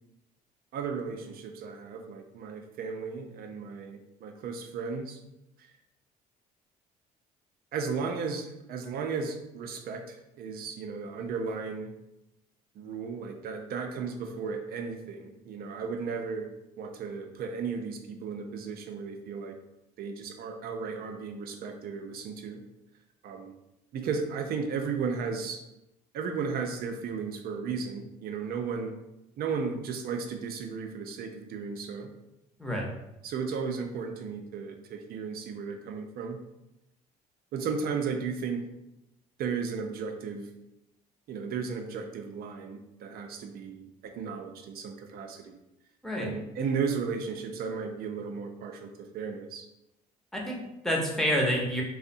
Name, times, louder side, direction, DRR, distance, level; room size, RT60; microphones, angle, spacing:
voice 1, 0.7-5.2 5.6-5.7 7.7-11.9 12.8-16.5 16.8-19.6 20.0-22.6 23.2-23.5 23.9-25.6 26.1-29.0 29.4-32.1 33.2-36.4 37.5-38.6 39.4-40.5 41.3-45.6 46.2-49.7, right 5 dB, 50° right, 5 dB, 0.4 m, -35 dB
voice 2, 50.3-51.8, equal, ahead, -2 dB, 0.7 m, -28 dB
2.6 x 2.0 x 2.6 m, 0.91 s
hypercardioid pair, 55°, 19 cm